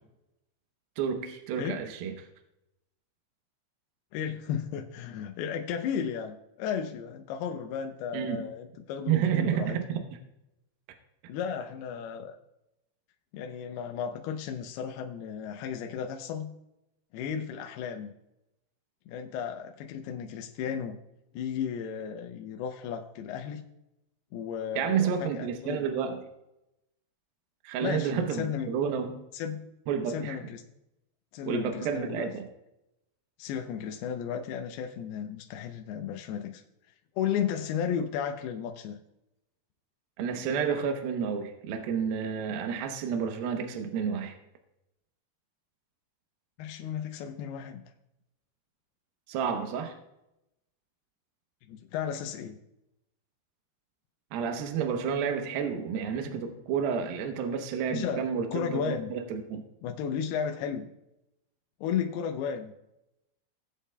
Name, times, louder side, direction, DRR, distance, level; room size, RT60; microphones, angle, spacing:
voice 1, 1.0-2.3 8.1-8.5 9.1-10.0 24.8-26.2 27.6-29.2 29.9-30.4 31.5-32.5 40.2-44.4 49.3-50.0 54.3-59.6, right 7 dB, 75° right, 5 dB, 2.4 m, -30 dB
voice 2, 4.1-9.8 11.3-12.4 13.3-16.5 17.1-18.1 19.1-21.0 21.3-23.7 24.3-25.9 27.8-28.7 29.3-29.7 30.1-30.6 31.3-32.3 33.4-36.6 37.2-39.0 46.6-47.8 51.7-52.6 57.9-58.2 58.5-59.1 59.8-60.9 61.8-62.7, left 8 dB, 80° left, 4 dB, 2.4 m, -34 dB
18.0 x 8.2 x 2.2 m, 0.87 s
omnidirectional pair, 5.0 m